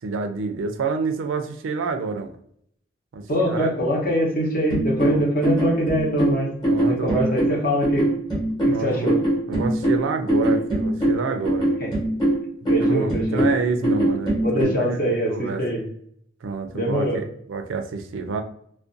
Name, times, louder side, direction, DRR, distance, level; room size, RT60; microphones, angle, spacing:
voice 1, 0.0-2.4 3.1-3.7 5.1-5.3 6.6-7.4 8.7-9.1 9.5-11.7 12.9-15.6 16.4-18.4, right 4 dB, 85° right, 7 dB, 0.4 m, -28 dB
voice 2, 3.3-6.5 6.8-8.1 8.6-9.2 11.8-11.9 12.7-13.4 14.4-15.8 16.7-17.2, equal, 45° left, -2 dB, 0.8 m, -23 dB
sound 1, 4.7-14.6, right 1 dB, 20° left, 0.9 m, -22 dB
2.5 x 2.2 x 2.5 m, 0.68 s
head